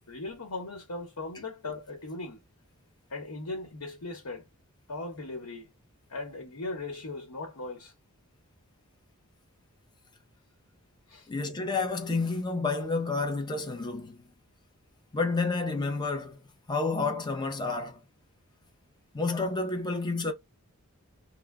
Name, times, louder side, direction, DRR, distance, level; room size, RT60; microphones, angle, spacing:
voice 1, 0.1-2.4 3.1-4.5 4.9-5.7 6.1-7.9 11.1-11.3, left 2 dB, 90° left, 0.9 m, -38 dB
voice 2, 11.3-14.2 15.1-16.4 16.7-18.0 19.1-20.3, left 3 dB, 20° left, 0.5 m, -30 dB
2.2 x 2.0 x 3.4 m
head